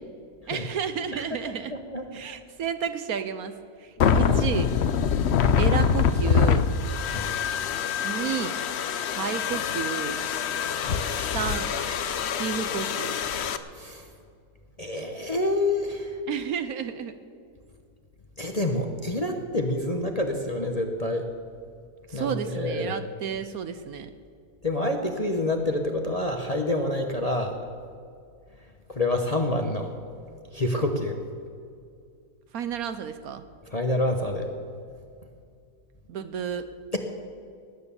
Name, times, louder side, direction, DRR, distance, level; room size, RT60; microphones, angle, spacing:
voice 1, 0.5-1.7 2.1-3.5 3.8-4.7 5.6-6.7 8.0-8.6 9.1-10.2 11.2-11.7 12.2-13.2 16.3-17.2 22.1-24.1 32.5-33.4 36.1-36.7, right 8 dB, 65° right, 11 dB, 1.1 m, -31 dB
voice 2, 1.7-2.1 4.0-4.4 7.0-7.3 10.7-11.1 13.7-14.1 14.8-16.2 18.4-21.3 22.1-22.9 24.6-27.6 28.9-29.9 30.5-31.2 33.7-34.5, left 1 dB, 30° left, 4 dB, 0.8 m, -27 dB
sound 1, 4.0-13.6, left 7 dB, 60° left, 0.7 m, -25 dB
19.0 x 9.4 x 7.0 m, 2.3 s
omnidirectional pair, 1.8 m